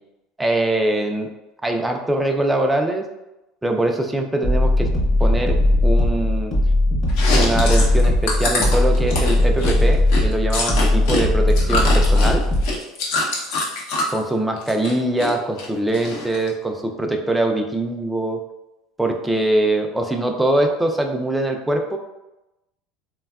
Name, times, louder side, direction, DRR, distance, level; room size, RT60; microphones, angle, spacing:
voice 1, 0.4-1.3 1.6-3.0 3.6-4.9 5.2-5.6 5.8-6.6 7.3-12.4 14.1-18.4 19.0-22.0, right 1 dB, 5° right, 3 dB, 0.3 m, -22 dB
sound 1, 4.4-12.8, left 1 dB, 35° left, 0.8 m, -18 dB
Chewing mastication, 7.1-11.2 11.5-14.2 14.6-15.3 15.6-16.5, left 2 dB, 75° left, 0.7 m, -24 dB
3.3 x 2.2 x 2.3 m, 0.96 s
supercardioid pair, 120°, 0 cm